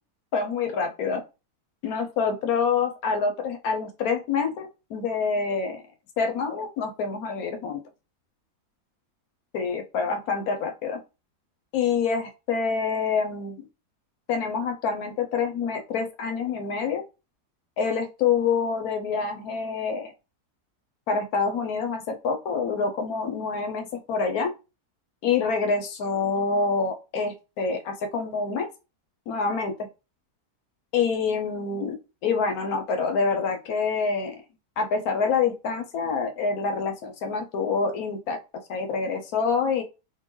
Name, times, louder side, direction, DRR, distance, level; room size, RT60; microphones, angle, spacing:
voice 1, 0.3-1.2 1.8-5.8 6.2-7.8 9.5-11.0 11.7-13.6 14.3-17.0 17.8-20.1 21.1-24.5 25.2-28.7 29.3-29.9 30.9-34.3 34.8-38.4 38.7-39.8, left 5 dB, 70° left, 6 dB, 1.1 m, -26 dB
3.7 x 2.6 x 3.0 m, 0.29 s
omnidirectional pair, 1.7 m